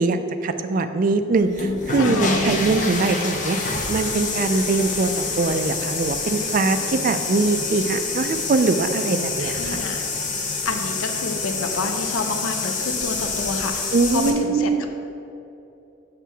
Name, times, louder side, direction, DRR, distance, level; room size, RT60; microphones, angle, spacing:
voice 1, 0.0-3.6 3.9-9.8 13.9-14.9, right 3 dB, 40° right, 9 dB, 0.3 m, -22 dB
sound 1, 1.4-14.3, left 3 dB, 40° left, 0.7 m, -27 dB
voice 2, 2.0-2.5 9.4-10.0 10.7-14.9, left 3 dB, 85° left, 6 dB, 0.5 m, -29 dB
7.3 x 5.9 x 3.4 m, 2.8 s
head